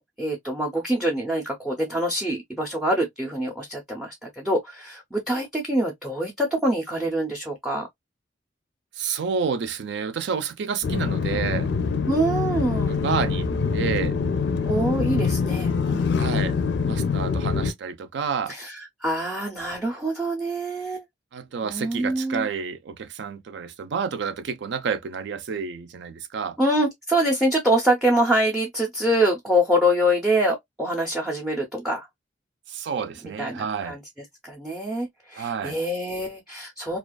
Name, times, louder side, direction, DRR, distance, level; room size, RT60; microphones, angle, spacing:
voice 1, 0.0-7.9 12.1-13.0 14.7-16.1 18.5-21.0 21.6-22.5 26.6-32.1 33.4-34.0 34.4-37.0, right 1 dB, 5° right, 0.5 m, -25 dB
voice 2, 8.9-11.7 12.9-14.2 16.2-16.6 16.8-18.5 21.3-26.6 32.7-34.0 35.3-35.8, right 6 dB, 65° right, 0.4 m, -29 dB
sound 1, 10.8-17.7, left 5 dB, 65° left, 0.4 m, -24 dB
2.3 x 2.3 x 2.2 m
head